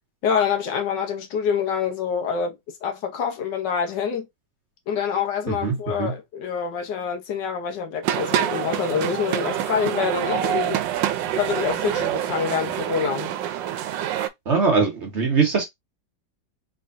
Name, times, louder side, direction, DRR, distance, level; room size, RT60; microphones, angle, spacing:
voice 1, 0.2-4.3 4.9-10.8 11.3-13.3, left 7 dB, 75° left, 1.5 m, -26 dB
voice 2, 5.5-6.1 14.4-15.6, right 4 dB, 45° right, 1.2 m, -22 dB
sound 1, 8.0-14.3, right 11 dB, 90° right, 1.3 m, -26 dB
3.7 x 3.3 x 2.5 m
omnidirectional pair, 1.9 m